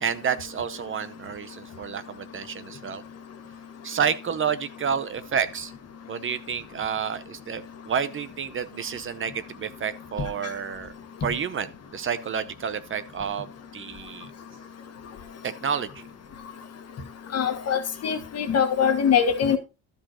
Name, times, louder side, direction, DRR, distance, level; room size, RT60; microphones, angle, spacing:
voice 1, 0.0-3.0 3.8-5.7 6.1-10.9 11.2-14.3 15.4-16.1, right 7 dB, 40° right, 0.7 m, -30 dB
voice 2, 17.3-19.6, left 7 dB, 50° left, 1.5 m, -23 dB
12.5 x 5.1 x 4.3 m
cardioid pair, 150°, 32 cm